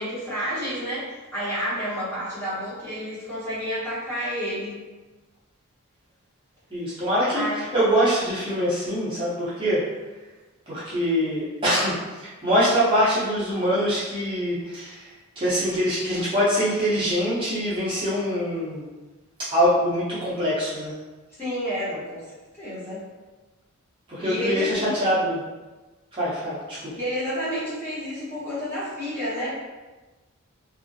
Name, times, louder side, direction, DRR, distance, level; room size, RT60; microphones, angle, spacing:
voice 1, 0.0-4.8 7.3-7.6 21.4-23.0 24.2-25.1 26.9-29.6, equal, 10° left, -11 dB, 0.9 m, -30 dB
voice 2, 6.7-9.8 10.7-15.1 15.4-18.9 19.4-20.9 24.1-25.4 26.1-26.9, equal, 25° right, -10 dB, 0.6 m, -24 dB
2.4 x 2.1 x 2.6 m, 1.2 s
head